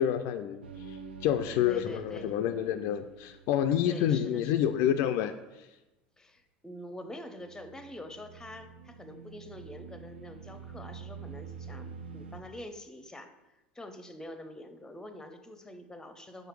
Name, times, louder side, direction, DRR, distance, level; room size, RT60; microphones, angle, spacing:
voice 1, 0.0-5.3, left 10 dB, 55° left, 7 dB, 0.3 m, -28 dB
sound 1, 0.6-4.9 7.4-12.4, right 5 dB, 85° right, 0.4 m, -47 dB
voice 2, 1.7-2.4 3.9-4.7 6.2-13.3 13.7-16.5, left 1 dB, 10° left, 8 dB, 0.6 m, -45 dB
4.9 x 4.5 x 4.6 m, 1.0 s
hypercardioid pair, 75°, 5 cm